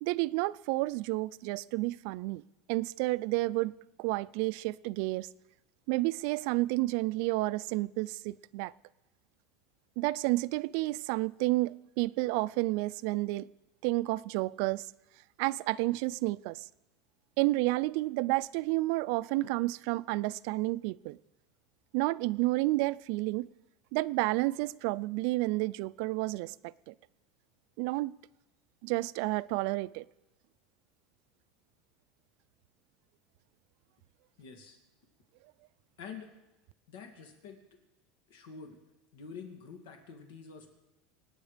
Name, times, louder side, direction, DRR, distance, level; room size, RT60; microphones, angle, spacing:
voice 1, 0.0-2.4 2.7-5.3 5.9-8.7 10.0-13.5 13.8-14.9 15.4-16.6 17.4-21.2 21.9-23.5 23.9-26.9 27.8-28.1 28.8-30.0, right 20 dB, 65° right, 0.4 m, -30 dB
voice 2, 34.4-34.8 36.0-36.3 36.9-37.6 38.3-38.8 39.1-40.7, left 5 dB, 90° left, 2.5 m, -47 dB
25.5 x 9.5 x 5.1 m
supercardioid pair, 150°, 0 cm